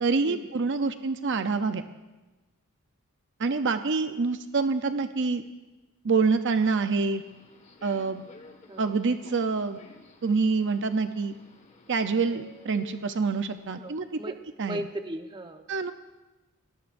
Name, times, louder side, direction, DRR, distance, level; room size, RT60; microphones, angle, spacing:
voice 1, 0.0-1.8 3.4-5.4 6.0-7.2 7.8-8.2 8.8-9.8 10.2-11.3 11.9-14.0 14.6-14.8 15.7-15.9, right 4 dB, 55° right, 8 dB, 0.7 m, -26 dB
Subway metro underground, 7.0-13.6, left 3 dB, 35° left, 1.7 m, -52 dB
voice 2, 13.7-14.4 14.6-15.6, right 1 dB, 20° right, 5 dB, 1.0 m, -37 dB
28.0 x 18.5 x 2.6 m, 1.1 s
head